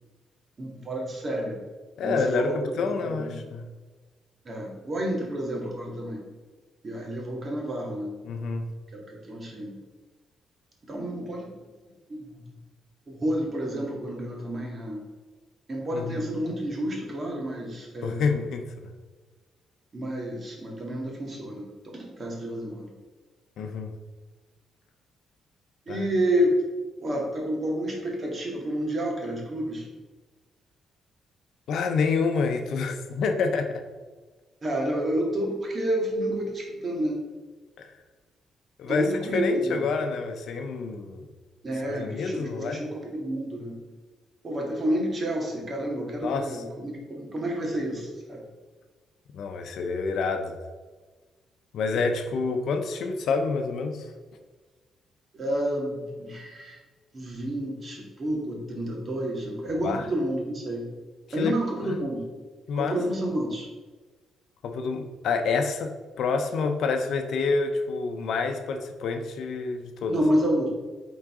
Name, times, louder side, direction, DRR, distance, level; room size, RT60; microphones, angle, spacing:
voice 1, 0.6-1.6 2.0-3.4 4.5-6.2 6.8-8.2 8.9-9.8 10.8-11.6 12.1-12.4 13.1-15.0 15.7-18.3 19.9-22.9 25.9-26.6 27.0-29.9 34.6-37.3 38.9-39.9 41.6-43.8 44.4-48.4 51.9-52.0 55.3-56.8 57.1-60.9 61.3-62.3 62.8-63.7 70.1-70.7, right 1 dB, 35° right, 0 dB, 1.9 m, -30 dB
voice 2, 2.0-3.7 8.2-8.7 15.9-16.3 18.0-18.6 23.6-23.9 25.9-26.0 31.7-33.8 37.8-37.9 38.8-41.3 41.8-42.8 46.2-46.6 49.3-50.6 51.7-54.1 59.7-60.1 61.4-61.5 62.7-63.0 64.6-70.1, left 4 dB, 70° left, 6 dB, 0.7 m, -28 dB
8.6 x 3.9 x 3.7 m, 1.3 s
cardioid pair, 90°, 0 cm